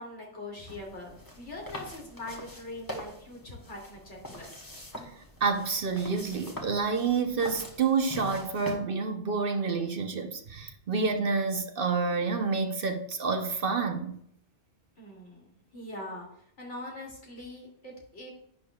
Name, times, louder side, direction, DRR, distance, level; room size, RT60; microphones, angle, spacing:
voice 1, 0.0-4.6 15.0-16.3 16.6-18.3, left 1 dB, 80° left, 3.1 m, -42 dB
sound 1, 0.7-8.8, left 1 dB, 20° left, 1.4 m, -44 dB
voice 2, 5.4-14.2, right 4 dB, 55° right, 1.0 m, -28 dB
10.5 x 9.0 x 2.4 m
omnidirectional pair, 1.2 m